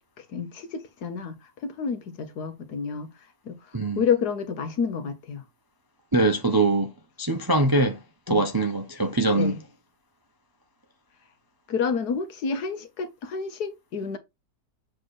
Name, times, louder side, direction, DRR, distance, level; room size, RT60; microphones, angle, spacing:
voice 1, 0.2-1.4 1.6-3.1 3.5-3.6 4.0-5.4 8.3-8.4 9.4-9.6 11.7-14.2, left 6 dB, 75° left, 1.6 m, -29 dB
voice 2, 3.7-4.0 6.1-6.9 7.2-8.0 8.3-9.5, right 2 dB, 25° right, 0.5 m, -22 dB
7.3 x 3.2 x 4.1 m
omnidirectional pair, 1.7 m